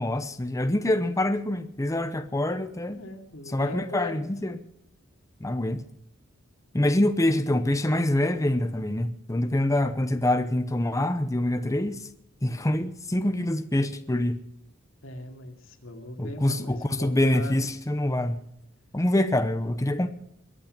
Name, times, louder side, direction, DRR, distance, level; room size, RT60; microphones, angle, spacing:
voice 1, 0.0-3.0 3.5-4.6 5.4-5.8 6.7-12.0 12.4-14.4 16.2-18.4 18.9-20.1, left 1 dB, 15° left, 0.8 m, -25 dB
voice 2, 3.0-4.2 15.0-17.6, left 1 dB, 85° left, 2.7 m, -39 dB
22.5 x 8.8 x 6.6 m
head